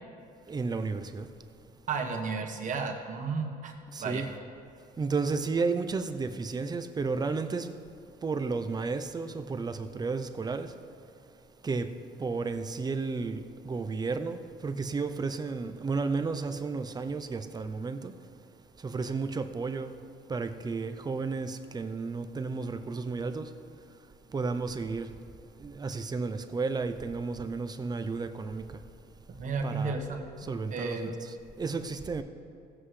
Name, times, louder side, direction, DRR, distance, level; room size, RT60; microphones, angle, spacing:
voice 1, 0.5-1.3 3.9-4.3 5.0-7.7 8.2-10.7 11.6-11.9 12.2-18.1 18.8-20.0 20.3-23.5 24.3-25.1 25.6-28.6 29.6-30.0 30.4-31.1 31.6-32.2, right 4 dB, 25° right, 0.6 m, -32 dB
voice 2, 1.9-3.7 4.0-4.2 29.3-30.2 30.7-31.1, right 4 dB, 50° right, 1.3 m, -33 dB
17.0 x 7.9 x 3.3 m
cardioid pair, 110°, 17 cm